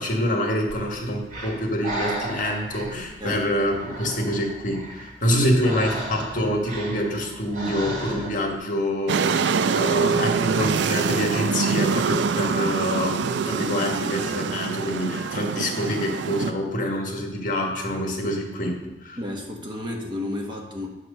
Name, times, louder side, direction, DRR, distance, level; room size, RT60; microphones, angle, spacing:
voice 1, 0.0-19.2, equal, 50° left, 1 dB, 1.6 m, -26 dB
Breathing, 0.7-8.6, right 1 dB, 50° right, 2.0 m, -35 dB
voice 2, 3.2-4.1 19.2-20.9, left 1 dB, 30° right, 1 dB, 1.3 m, -33 dB
sound 1, 9.1-16.5, right 5 dB, 85° right, 0.4 m, -24 dB
9.1 x 4.7 x 6.7 m, 1.0 s
head